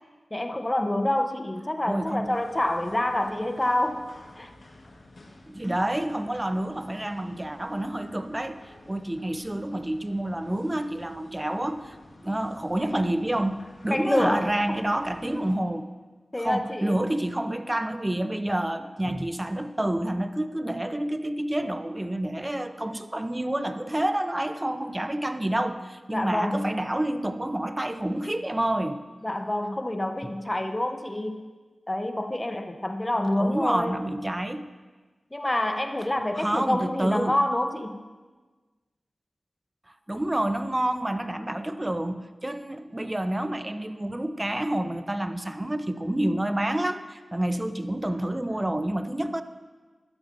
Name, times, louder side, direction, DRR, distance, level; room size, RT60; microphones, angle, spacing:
voice 1, 0.3-4.1 4.4-4.5 13.9-14.8 16.3-17.0 26.1-26.8 29.2-31.4 31.9-34.0 35.3-38.0, left 1 dB, 25° left, 6 dB, 0.8 m, -27 dB
voice 2, 1.9-2.3 5.5-8.6 8.9-12.0 12.2-15.9 16.4-29.0 33.4-34.7 36.4-37.3 40.1-49.4, right 1 dB, 20° right, 10 dB, 0.7 m, -28 dB
sound 1, 2.2-15.6, left 2 dB, 65° left, 1.5 m, -51 dB
16.0 x 11.5 x 2.6 m, 1.3 s
cardioid pair, 40°, 0 cm